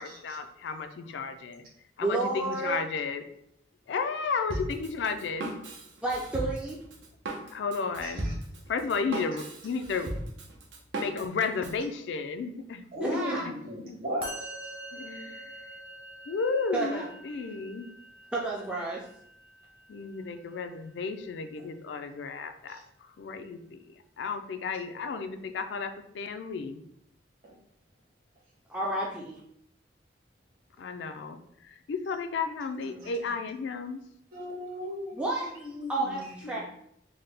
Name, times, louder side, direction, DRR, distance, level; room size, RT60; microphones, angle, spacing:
voice 1, 0.0-1.6 2.0-3.2 3.9-5.6 7.5-8.3 8.7-10.1 11.0-12.8 13.1-13.2 13.5-13.6 13.8-14.0 14.9-15.7 16.3-17.9 19.9-26.8 30.8-34.1 36.4-36.6, left 4 dB, 75° left, 8 dB, 0.3 m, -33 dB
voice 2, 2.0-2.8 6.0-6.8 13.0-13.5 16.7-17.1 18.3-19.0 28.7-29.4 35.1-36.6, right 2 dB, 5° right, -4 dB, 0.3 m, -31 dB
Drum kit, 4.5-11.8, right 1 dB, 85° right, 0.7 m, -37 dB
voice 3, 8.0-8.3 12.9-14.5 27.4-27.5 32.9-33.1 34.3-36.6, equal, 50° right, -3 dB, 1.2 m, -37 dB
Musical instrument, 14.2-21.5, right 1 dB, 30° right, 0.7 m, -46 dB
4.0 x 2.1 x 3.2 m, 0.73 s
head